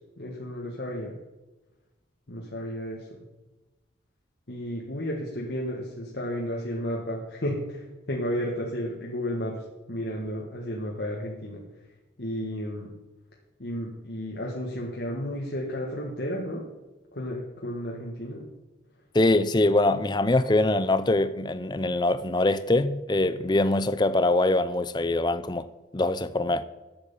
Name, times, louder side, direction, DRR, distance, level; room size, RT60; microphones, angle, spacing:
voice 1, 0.2-1.1 2.3-3.3 4.5-11.6 12.2-12.9 13.6-16.7 17.1-18.5, equal, 60° left, 1.6 m, -33 dB
voice 2, 19.1-25.7 25.9-26.6, left 2 dB, 25° left, 0.5 m, -23 dB
10.5 x 8.0 x 7.0 m
head